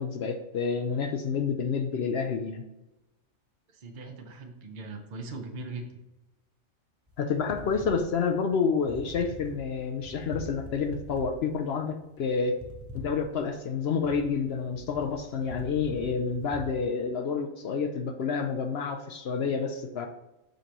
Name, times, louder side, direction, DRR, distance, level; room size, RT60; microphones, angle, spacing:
voice 1, 0.0-2.6 7.2-12.6 12.9-20.1, left 5 dB, 65° left, 5 dB, 0.7 m, -29 dB
voice 2, 3.7-6.0, right 3 dB, 45° right, 3 dB, 0.8 m, -40 dB
sound 1, 7.1-16.7, equal, 20° right, 0.3 m, -44 dB
6.5 x 5.2 x 2.9 m, 0.96 s
omnidirectional pair, 1.4 m